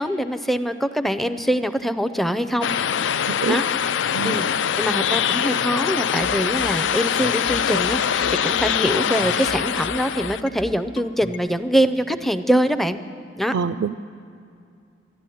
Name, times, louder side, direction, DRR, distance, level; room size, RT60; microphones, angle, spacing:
voice 1, 0.0-2.7 3.5-3.9 4.2-4.5 4.8-13.0 13.4-13.5, equal, ahead, 10 dB, 0.5 m, -23 dB
sound 1, 2.6-10.4, left 8 dB, 80° left, 0.4 m, -23 dB
voice 2, 3.3-3.6 4.1-4.4 13.5-14.0, right 6 dB, 80° right, 10 dB, 0.4 m, -25 dB
sound 2, 6.2-11.5, left 2 dB, 30° left, 0.9 m, -38 dB
13.0 x 12.0 x 9.2 m, 2.4 s
head